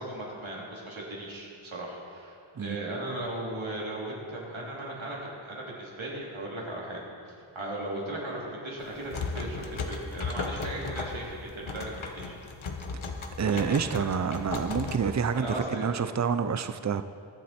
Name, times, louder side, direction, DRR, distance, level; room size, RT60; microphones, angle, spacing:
voice 1, 0.0-7.0 7.5-12.3 13.5-14.0 15.0-15.9, right 1 dB, 70° right, -4 dB, 3.2 m, -37 dB
sound 1, 8.8-15.6, left 4 dB, 75° left, 1.2 m, -36 dB
voice 2, 13.4-17.0, right 6 dB, 35° right, 11 dB, 0.5 m, -28 dB
22.0 x 7.5 x 4.4 m, 2.4 s
wide cardioid pair, 60°, 48 cm